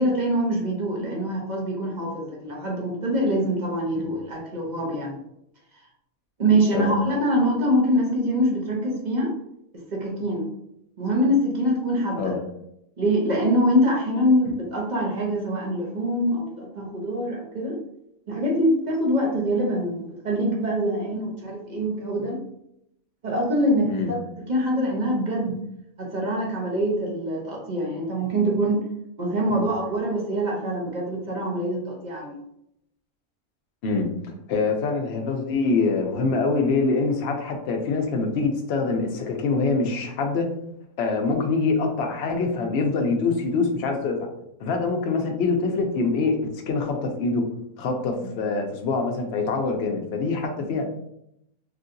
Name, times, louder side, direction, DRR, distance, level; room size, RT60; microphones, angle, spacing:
voice 1, 0.0-5.2 6.4-9.3 9.9-10.5 11.0-12.3 13.0-17.8 18.3-22.4 23.2-25.6 26.0-28.8 29.2-32.4 48.2-48.3 50.6-50.8, equal, 50° right, -2 dB, 0.5 m, -24 dB
voice 2, 34.5-40.5 41.0-44.2 44.6-46.4 46.7-47.4 47.8-50.9, left 4 dB, 65° left, 3 dB, 0.7 m, -24 dB
3.0 x 2.6 x 2.5 m, 0.79 s
omnidirectional pair, 1.5 m